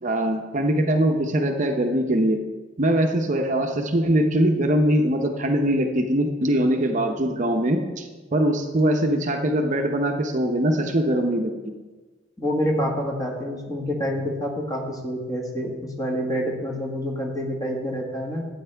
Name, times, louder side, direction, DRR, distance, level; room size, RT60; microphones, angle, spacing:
voice 1, 0.0-2.4 2.8-11.5, right 1 dB, 40° right, 4 dB, 0.7 m, -22 dB
voice 2, 12.4-18.5, equal, 20° left, -1 dB, 1.6 m, -27 dB
12.5 x 8.7 x 3.4 m, 1.3 s
head